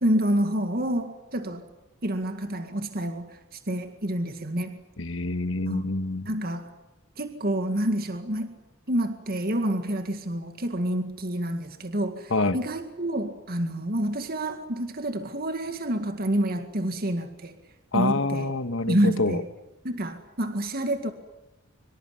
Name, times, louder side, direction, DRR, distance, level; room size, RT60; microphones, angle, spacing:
voice 1, 0.0-1.6 2.0-4.8 5.7-5.9 6.3-6.7 7.2-8.6 8.9-17.6 17.9-18.5 18.9-19.5 19.8-21.1, right 1 dB, 45° right, 7 dB, 2.1 m, -28 dB
voice 2, 5.0-6.3 12.3-12.6 17.9-19.4, left 2 dB, 70° left, 11 dB, 1.7 m, -26 dB
25.0 x 25.0 x 9.6 m, 0.93 s
head